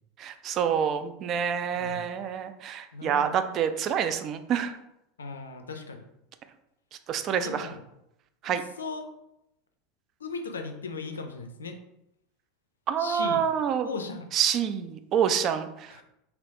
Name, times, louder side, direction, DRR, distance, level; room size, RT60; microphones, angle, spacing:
voice 1, 0.2-4.8 7.1-7.7 8.4-8.6 12.9-13.9 14.3-16.0, right 8 dB, 40° right, 9 dB, 0.3 m, -27 dB
voice 2, 1.7-2.1 2.9-3.5 5.2-6.1 7.3-7.8 8.8-9.1 10.2-11.8 13.0-13.4 13.8-14.3 15.9-16.0, left 4 dB, 75° left, 6 dB, 0.4 m, -37 dB
3.3 x 2.9 x 2.5 m, 0.83 s
figure-of-eight pair, 80°, 0 cm